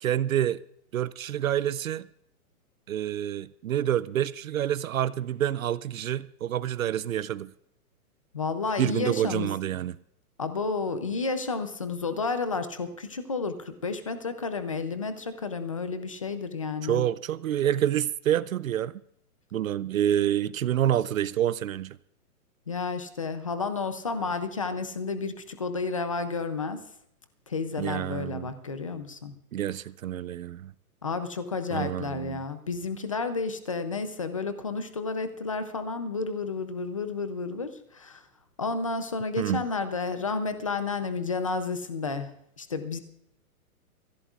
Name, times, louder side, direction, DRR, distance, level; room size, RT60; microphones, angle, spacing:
voice 1, 0.0-0.6 0.9-2.1 2.9-7.5 8.8-10.0 16.8-18.9 19.5-22.0 27.8-28.5 29.5-30.7 31.7-32.4 39.4-39.6, right 11 dB, 65° right, 0.5 m, -27 dB
voice 2, 8.3-9.5 10.4-17.0 22.7-26.8 27.5-29.3 31.0-38.2 38.6-42.3 42.6-43.0, left 4 dB, 25° left, 0.5 m, -31 dB
24.5 x 15.0 x 2.4 m
hypercardioid pair, 175°, 45 cm